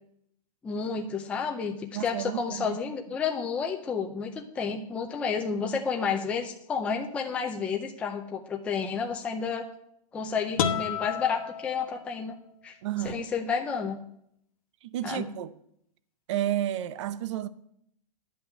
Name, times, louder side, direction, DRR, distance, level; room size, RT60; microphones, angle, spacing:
voice 1, 0.6-9.7 10.1-12.4 12.6-12.8 13.0-14.0 15.0-15.3, left 6 dB, 5° left, 0.5 m, -31 dB
voice 2, 1.9-2.8 12.8-13.3 14.8-15.5 16.3-17.5, right 12 dB, 50° right, 0.6 m, -31 dB
sound 1, 10.6-12.5, left 8 dB, 60° left, 1.2 m, -31 dB
10.5 x 5.6 x 8.4 m
hypercardioid pair, 165°, 20 cm